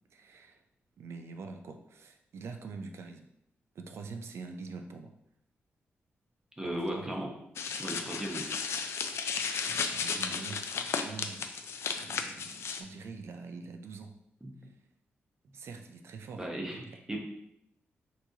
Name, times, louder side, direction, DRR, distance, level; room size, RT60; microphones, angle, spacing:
voice 1, 0.1-0.6 1.0-3.3 3.7-5.2 6.6-7.2 9.7-11.4 12.0-14.1 15.5-16.8, right 4 dB, 70° right, 6 dB, 0.5 m, -45 dB
voice 2, 6.6-7.3 7.8-8.5 14.4-14.6 16.3-17.2, right 1 dB, 15° right, 0 dB, 0.9 m, -36 dB
sound 1, 7.6-12.8, left 6 dB, 75° left, 0.4 m, -34 dB
6.0 x 3.0 x 2.8 m, 0.79 s
wide cardioid pair, 115°, 5 cm